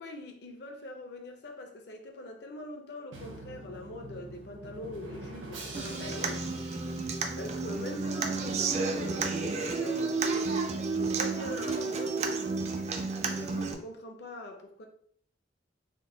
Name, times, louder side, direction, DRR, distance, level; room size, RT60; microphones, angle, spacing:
voice 1, 0.0-6.5 7.4-14.9, left 1 dB, 60° left, 0.6 m, -43 dB
Drum, 3.1-8.0, right 2 dB, 85° right, 0.9 m, -45 dB
Human voice / Acoustic guitar, 5.7-13.7, right 4 dB, 35° right, 0.3 m, -31 dB
3.7 x 2.2 x 3.7 m
head